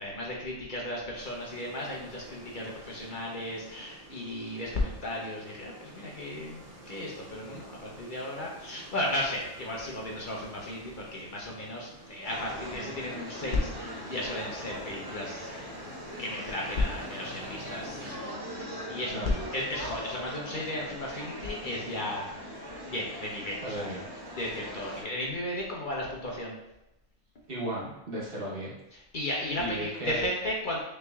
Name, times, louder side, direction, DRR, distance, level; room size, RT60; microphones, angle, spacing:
voice 1, 0.0-15.8 16.2-22.5 22.8-23.9 24.3-26.6 28.9-30.8, left 1 dB, 50° left, -2 dB, 0.9 m, -35 dB
sound 1, 1.1-18.1, right 2 dB, 75° right, 1.5 m, -50 dB
sound 2, 12.2-25.0, equal, 20° right, 0.9 m, -41 dB
voice 2, 19.1-19.4 23.6-24.0 27.5-28.7 29.6-30.2, right 1 dB, 55° right, -5 dB, 1.3 m, -35 dB
6.3 x 3.1 x 2.3 m, 0.90 s
omnidirectional pair, 1.2 m